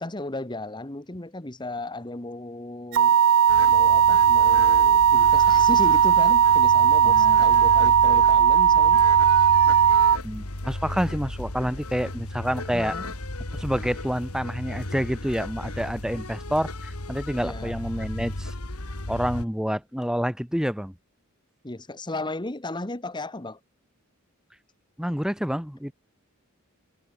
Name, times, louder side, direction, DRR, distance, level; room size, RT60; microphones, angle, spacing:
voice 1, 0.0-3.2 3.7-9.0 12.7-13.1 17.4-17.8 21.6-23.6, left 2 dB, 20° left, 1.3 m, -35 dB
sound 1, 2.9-10.2, right 8 dB, 60° right, 0.4 m, -17 dB
sound 2, 3.5-19.4, left 1 dB, 85° left, 3.1 m, -35 dB
voice 2, 7.0-7.4 10.2-13.0 13.5-18.5 19.1-20.9 25.0-25.9, equal, 5° right, 1.9 m, -28 dB
head